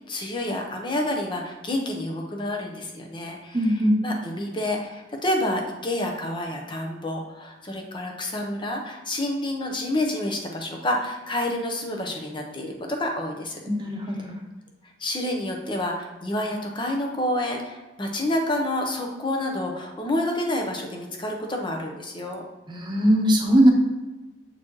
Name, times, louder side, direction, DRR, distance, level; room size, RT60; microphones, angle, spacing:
voice 1, 0.1-13.6 15.0-22.4, left 1 dB, 25° left, 2 dB, 0.8 m, -29 dB
voice 2, 3.5-3.9 13.7-14.4 22.7-23.7, equal, 25° right, 0 dB, 0.9 m, -20 dB
7.4 x 4.1 x 3.1 m, 1.1 s
head